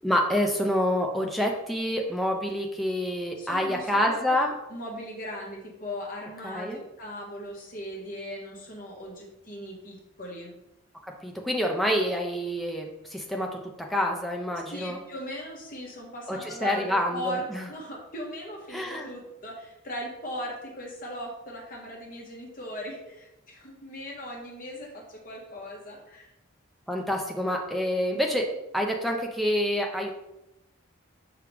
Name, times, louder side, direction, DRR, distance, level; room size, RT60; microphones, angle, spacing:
voice 1, 0.0-4.5 6.4-6.8 11.2-15.0 16.3-17.7 18.7-19.1 26.9-30.1, equal, ahead, 0 dB, 0.5 m, -27 dB
voice 2, 3.4-10.5 14.7-26.3, equal, 40° left, -2 dB, 1.5 m, -38 dB
5.8 x 5.0 x 3.4 m, 0.91 s
head